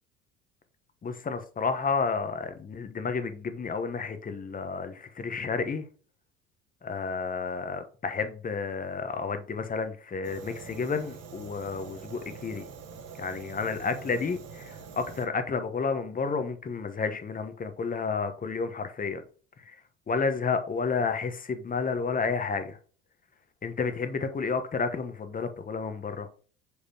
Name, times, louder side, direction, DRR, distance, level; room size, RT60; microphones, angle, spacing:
voice 1, 1.0-5.9 6.8-12.6 13.2-19.2 19.7-19.8 20.1-22.8 23.6-26.3, left 5 dB, 25° left, 1.1 m, -31 dB
Fire, 10.2-15.3, right 6 dB, 45° right, 1.3 m, -45 dB
6.4 x 5.2 x 2.8 m
hypercardioid pair, 65°, 35 cm